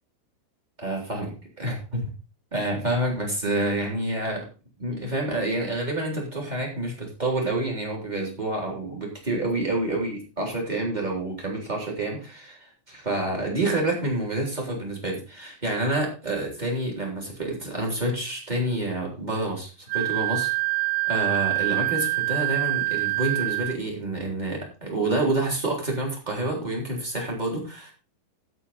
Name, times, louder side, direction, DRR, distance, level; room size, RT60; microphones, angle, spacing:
voice 1, 0.8-2.1 2.5-4.5 4.8-20.5 21.1-27.9, right 2 dB, 10° right, -1 dB, 3.0 m, -28 dB
Wind instrument woodwind instrument, 19.9-23.8, right 22 dB, 80° right, 2.8 m, -25 dB
15.5 x 6.3 x 4.3 m, 0.33 s
omnidirectional pair, 5.5 m